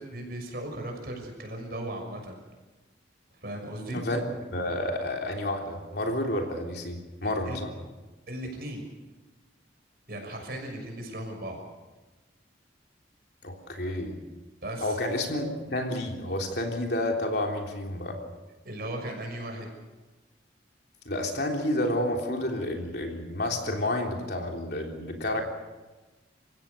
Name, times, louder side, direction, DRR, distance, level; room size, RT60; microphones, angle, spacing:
voice 1, 0.0-2.4 3.4-4.0 7.2-7.6 8.3-8.8 10.1-11.6 14.6-15.0 18.6-19.7, right 1 dB, 55° right, 3 dB, 6.3 m, -37 dB
voice 2, 4.5-7.7 13.4-14.2 14.8-18.2 21.1-25.4, left 1 dB, 60° left, 1 dB, 3.5 m, -30 dB
28.5 x 16.5 x 6.8 m, 1.2 s
head